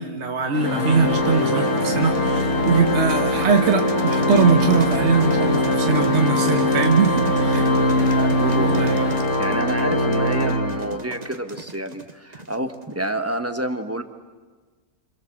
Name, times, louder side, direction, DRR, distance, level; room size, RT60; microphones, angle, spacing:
voice 1, 0.0-7.7 8.8-8.9, right 5 dB, 45° right, 4 dB, 1.7 m, -21 dB
sound 1, 0.5-9.2, left 2 dB, 80° left, 3.8 m, -31 dB
Organ, 0.6-11.3, left 1 dB, 50° left, 1.9 m, -22 dB
sound 2, 1.5-12.9, right 3 dB, 25° right, 1.5 m, -38 dB
voice 2, 8.1-8.9 9.4-14.0, right 1 dB, 10° right, 7 dB, 1.3 m, -28 dB
29.5 x 26.5 x 7.4 m, 1.3 s
omnidirectional pair, 1.7 m